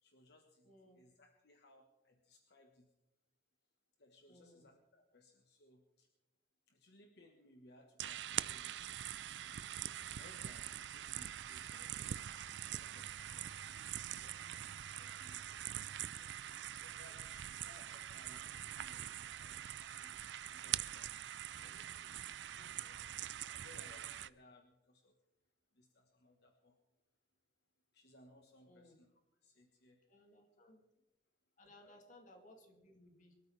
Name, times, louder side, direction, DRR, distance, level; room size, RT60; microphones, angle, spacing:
voice 1, 0.0-2.9 4.0-6.1 6.7-9.0 9.3-9.4 10.1-12.5 12.8-14.6 14.9-16.2 16.8-21.1 21.5-22.3 22.6-25.1 25.7-26.8 27.9-29.1 29.4-30.0 30.5-30.6 31.8-32.0, left 1 dB, 65° left, 3 dB, 1.4 m, -65 dB
voice 2, 0.6-1.0 4.3-4.7 16.2-16.3 22.5-22.7 28.6-29.0 30.1-30.8 31.6-33.4, left 1 dB, 45° left, 3 dB, 2.6 m, -62 dB
sound 1, 8.0-24.3, right 11 dB, 80° right, 0.4 m, -44 dB
24.5 x 13.0 x 3.4 m, 0.93 s
head